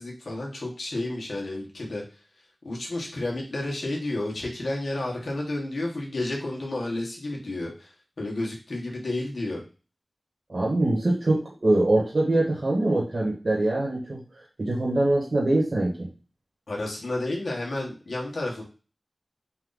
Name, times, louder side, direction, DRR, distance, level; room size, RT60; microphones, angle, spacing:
voice 1, 0.0-2.0 2.6-9.6 16.7-18.6, left 2 dB, 80° left, -2 dB, 1.5 m, -31 dB
voice 2, 10.5-14.2 14.6-16.1, right 2 dB, 60° right, -5 dB, 1.8 m, -23 dB
4.6 x 2.7 x 3.9 m, 0.35 s
wide cardioid pair, 50°, 0 cm